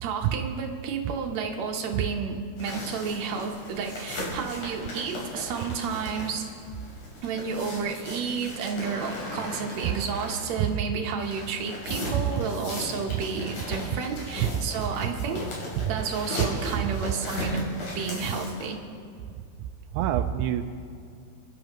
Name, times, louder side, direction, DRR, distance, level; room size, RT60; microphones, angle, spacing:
voice 1, 0.0-6.5 7.2-15.5 15.9-17.7 18.0-18.8, right 5 dB, 70° right, 2 dB, 2.3 m, -31 dB
sound 1, 2.6-10.7 11.2-18.6, left 1 dB, 80° left, 4.6 m, -37 dB
voice 2, 19.9-20.6, right 12 dB, 90° right, 7 dB, 2.0 m, -26 dB
27.5 x 11.0 x 3.1 m, 2.3 s
omnidirectional pair, 3.4 m